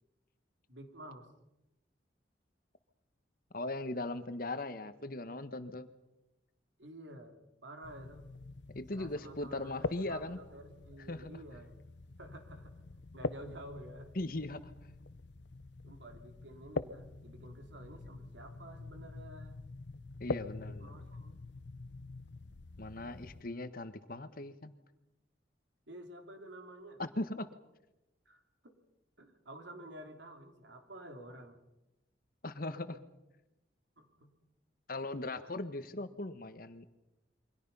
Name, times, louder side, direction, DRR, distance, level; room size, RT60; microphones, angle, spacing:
voice 1, 0.7-1.3 6.8-8.3 8.9-11.7 12.2-12.9 13.1-14.1 15.8-19.6 20.6-21.4 25.9-27.0 28.3-28.8 29.2-31.6 34.0-34.3, right 1 dB, 80° right, 5 dB, 3.6 m, -50 dB
voice 2, 3.5-5.9 8.7-10.4 11.1-11.4 14.1-14.7 20.2-20.9 22.8-24.7 27.0-27.5 32.4-33.0 34.9-36.8, left 2 dB, 50° left, 11 dB, 1.4 m, -39 dB
sound 1, 7.8-23.4, left 3 dB, 70° left, 0.8 m, -44 dB
28.0 x 24.0 x 5.6 m, 0.97 s
head